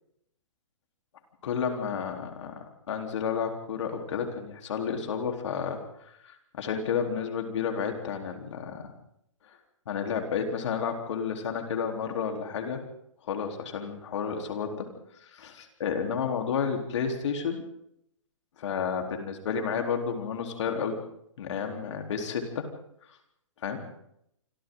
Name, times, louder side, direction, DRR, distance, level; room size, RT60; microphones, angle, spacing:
voice 1, 1.4-2.5 2.9-5.8 6.2-8.9 9.9-12.8 13.2-14.9 15.2-17.6 18.6-21.0 21.4-22.6 23.6-23.8, left 6 dB, 60° left, 3 dB, 4.0 m, -31 dB
27.0 x 26.0 x 4.0 m, 0.75 s
hypercardioid pair, 145°, 17 cm